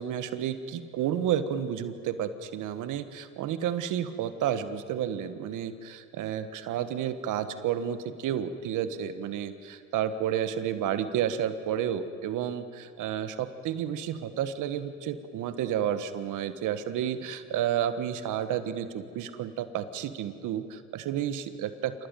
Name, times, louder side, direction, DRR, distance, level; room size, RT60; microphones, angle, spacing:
voice 1, 0.0-22.1, right 9 dB, 90° right, 11 dB, 1.6 m, -31 dB
27.0 x 18.5 x 9.2 m, 2.4 s
cardioid pair, 90°, 30 cm